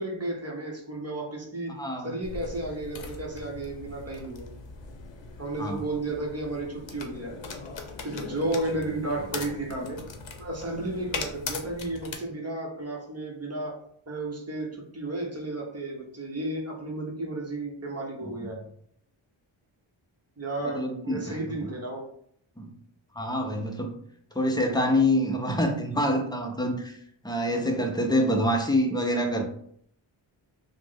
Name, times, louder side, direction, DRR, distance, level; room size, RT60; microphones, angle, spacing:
voice 1, 0.0-1.7 2.0-4.5 5.4-7.4 8.0-10.0 10.4-13.8 14.1-18.6 20.4-22.1, right 2 dB, 30° right, -1 dB, 0.8 m, -33 dB
voice 2, 1.7-2.2 5.6-5.8 18.2-18.5 20.6-21.7 22.6-22.7 23.1-23.9 24.3-27.0 27.2-29.4, left 1 dB, 10° left, 2 dB, 0.5 m, -26 dB
sound 1, 2.2-12.2, left 4 dB, 60° left, 0.7 m, -40 dB
3.1 x 2.1 x 3.5 m, 0.65 s
wide cardioid pair, 75°, 50 cm